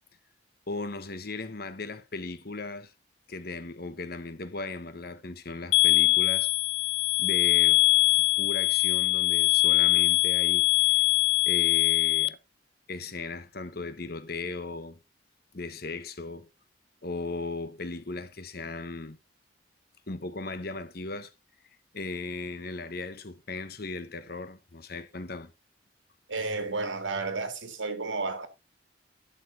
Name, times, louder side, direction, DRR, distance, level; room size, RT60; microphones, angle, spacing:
voice 1, 0.7-2.9 3.3-6.5 7.2-7.8 8.1-11.1 11.4-12.4 12.9-15.0 15.5-16.5 17.0-19.2 20.1-21.3 21.9-25.5, left 3 dB, 55° left, 1.1 m, -37 dB
sound 1, 5.7-12.3, left 24 dB, 70° left, 0.5 m, -22 dB
voice 2, 26.3-28.5, right 3 dB, 80° right, 2.4 m, -32 dB
11.5 x 6.7 x 3.9 m
head